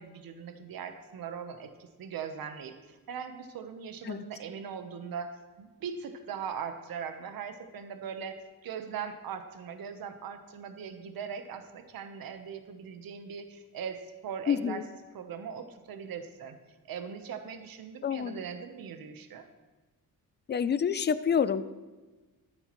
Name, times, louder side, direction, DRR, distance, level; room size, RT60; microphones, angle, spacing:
voice 1, 0.0-14.8 15.1-16.6 16.8-19.5, right 7 dB, 75° right, 8 dB, 1.1 m, -40 dB
voice 2, 14.5-14.8 18.0-18.4 20.5-21.7, left 7 dB, 30° left, 14 dB, 0.4 m, -28 dB
14.0 x 12.5 x 3.1 m, 1.2 s
wide cardioid pair, 145°, 35 cm